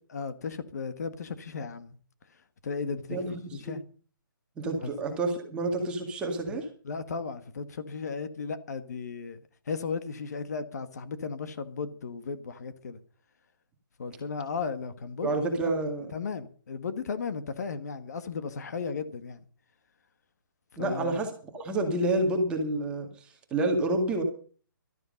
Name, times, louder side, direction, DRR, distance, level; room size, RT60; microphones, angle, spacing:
voice 1, 0.1-1.9 2.6-3.2 3.5-3.8 4.8-4.9 6.5-6.6 6.8-9.4 9.7-13.0 14.0-15.7 16.1-19.4 20.8-21.2, left 5 dB, 50° left, 1.6 m, -35 dB
voice 2, 3.1-3.8 4.6-6.7 15.2-16.1 20.8-24.2, right 2 dB, 10° right, 1.9 m, -29 dB
13.0 x 13.0 x 5.3 m
hypercardioid pair, 170°, 11 cm